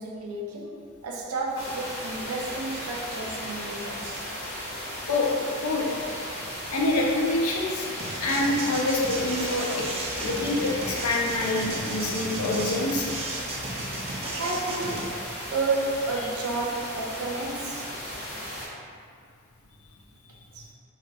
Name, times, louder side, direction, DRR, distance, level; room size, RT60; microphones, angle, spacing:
voice 1, 0.0-4.3 14.3-17.9 20.5-20.7, right 3 dB, 80° right, -1 dB, 0.5 m, -31 dB
sound 1, 1.5-18.7, equal, 55° left, 1.2 m, -35 dB
voice 2, 6.7-7.9 8.2-9.9 10.2-13.1, left 2 dB, 85° left, -2 dB, 0.5 m, -26 dB
sound 2, 8.0-15.1, right 2 dB, 30° right, 0.3 m, -35 dB
2.3 x 2.2 x 3.9 m, 2.2 s
head